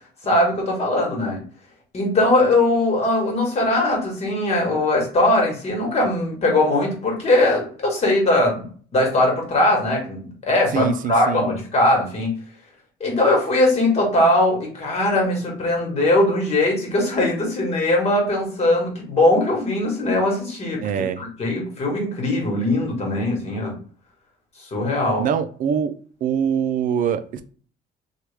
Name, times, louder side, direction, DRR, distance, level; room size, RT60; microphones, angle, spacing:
voice 1, 0.2-1.4 1.9-8.6 8.9-12.3 13.0-23.7 24.7-25.2, left 1 dB, 40° left, 0 dB, 1.4 m, -20 dB
voice 2, 10.7-11.5 20.8-21.2 25.2-25.9 26.2-27.4, right 8 dB, 50° right, 11 dB, 0.4 m, -23 dB
3.0 x 2.4 x 3.2 m, 0.43 s
cardioid pair, 110°, 17 cm